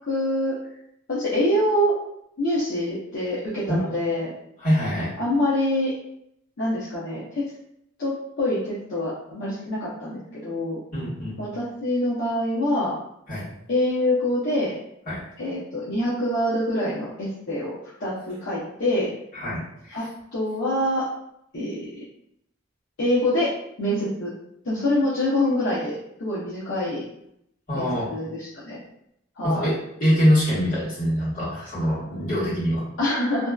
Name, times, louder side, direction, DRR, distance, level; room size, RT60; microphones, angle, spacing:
voice 1, 0.1-0.6 1.1-2.0 2.4-4.3 5.2-5.9 6.6-7.4 8.0-10.8 11.4-12.9 13.7-14.7 15.4-17.7 18.0-19.1 19.9-20.0 20.3-21.0 21.5-21.9 23.0-23.5 23.8-24.3 24.6-27.0 27.7-28.3 28.7-28.8 29.4-29.7 33.0-33.5, left 1 dB, 75° left, -8 dB, 0.6 m, -25 dB
voice 2, 4.6-5.1 10.9-11.4 13.3-13.5 15.1-15.2 19.3-20.1 27.7-28.1 29.4-32.8, equal, 45° left, -10 dB, 1.3 m, -24 dB
2.6 x 2.2 x 2.2 m, 0.76 s
head